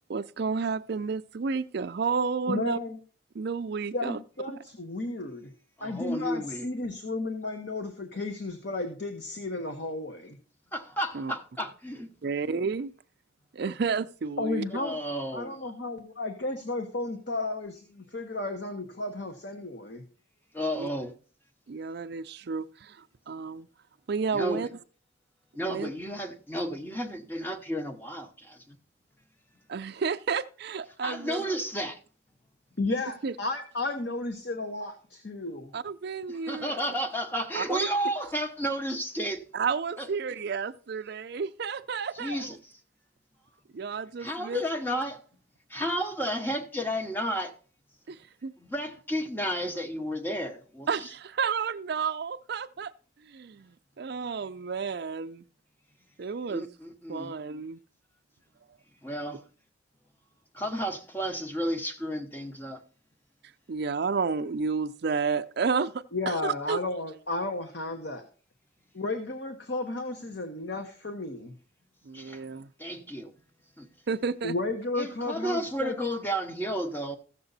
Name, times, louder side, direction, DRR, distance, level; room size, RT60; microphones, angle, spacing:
voice 1, 0.1-2.8 3.3-4.2 11.1-11.3 12.2-12.9 13.5-14.6 20.8-20.9 21.7-23.7 24.1-24.7 25.6-25.9 29.7-31.5 33.2-33.3 35.7-36.8 37.5-37.9 39.5-42.6 43.7-44.6 48.1-48.5 50.9-52.9 53.2-55.4 56.2-56.6 57.1-57.8 63.7-66.8 72.1-72.7 74.1-74.5, right 5 dB, 55° right, 0.4 m, -31 dB
voice 2, 2.5-3.0 3.9-5.5 5.8-10.4 14.4-15.0 15.3-20.0 32.8-35.7 66.1-68.2 68.9-71.5 74.4-75.9, left 2 dB, 55° left, 1.2 m, -33 dB
voice 3, 5.8-6.7 10.7-12.1 14.7-15.7 20.5-21.1 24.3-24.6 25.5-28.8 31.0-32.0 36.3-39.4 40.0-40.1 42.1-42.7 44.2-45.2 45.7-47.5 48.6-51.1 56.5-57.3 59.0-59.4 60.5-62.8 72.1-72.4 72.8-73.3 73.8-73.9 75.0-77.2, equal, 10° left, 1.0 m, -32 dB
15.0 x 6.8 x 4.1 m
head